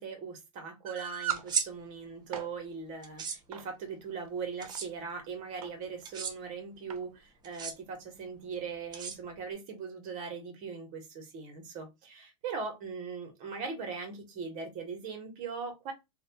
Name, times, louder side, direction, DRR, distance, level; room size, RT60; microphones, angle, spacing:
voice 1, 0.0-15.9, right 5 dB, 45° right, 1.0 m, -40 dB
sound 1, 0.9-1.5 2.1-2.5 3.5-3.7 4.4-4.8 5.6-5.7 6.0-6.1 6.9-7.1, right 9 dB, 80° right, 0.5 m, -37 dB
sound 2, 1.4-1.7 3.0-3.4 4.6-4.9 6.0-6.3 7.4-7.7 8.9-9.5, right 6 dB, 25° right, 0.5 m, -34 dB
2.5 x 2.2 x 2.7 m
hypercardioid pair, 110°, 18 cm